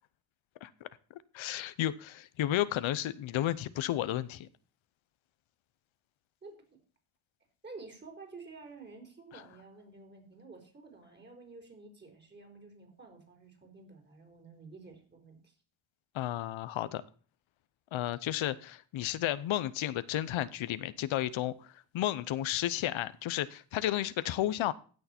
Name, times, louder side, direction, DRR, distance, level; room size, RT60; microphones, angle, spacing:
voice 1, 1.3-4.5 9.3-9.4 16.1-17.0 17.9-24.7, left 13 dB, 85° left, 16 dB, 0.8 m, -32 dB
voice 2, 6.4-6.8 7.6-15.5, right 3 dB, 20° right, 3 dB, 4.1 m, -51 dB
16.0 x 6.5 x 4.3 m, 0.40 s
cardioid pair, 120°, 46 cm